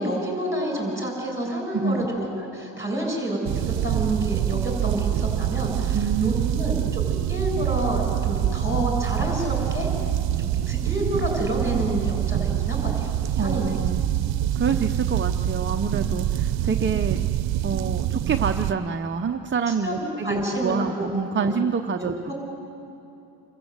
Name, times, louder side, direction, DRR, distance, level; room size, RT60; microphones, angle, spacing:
voice 1, 0.0-10.1 10.4-13.7 19.7-21.1 21.4-21.6 22.0-22.3, right 1 dB, 5° right, 0 dB, 6.7 m, -29 dB
voice 2, 1.7-2.1 5.9-6.6 13.4-14.0 14.5-17.2 17.6-22.1, right 5 dB, 25° right, 5 dB, 0.6 m, -27 dB
sound 1, 3.4-18.7, right 11 dB, 75° right, 0.7 m, -25 dB
27.5 x 14.5 x 7.9 m, 2.8 s
cardioid pair, 105°, 45 cm